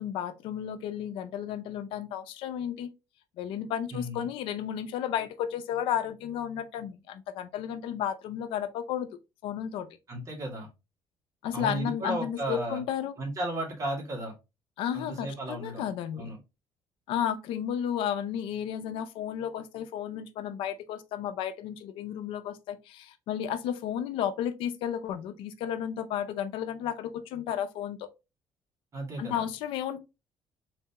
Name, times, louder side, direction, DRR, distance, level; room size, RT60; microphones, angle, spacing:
voice 1, 0.0-2.9 3.4-9.1 9.4-9.9 11.4-13.1 14.8-16.3 17.1-28.1 29.2-30.0, left 9 dB, 85° left, 0.5 m, -33 dB
voice 2, 3.9-4.3 10.1-10.7 11.5-12.8 13.2-14.3 14.9-15.9 16.2-16.4 28.9-29.4, right 1 dB, 35° right, 2.0 m, -34 dB
3.9 x 3.4 x 2.8 m
cardioid pair, 115°, 9 cm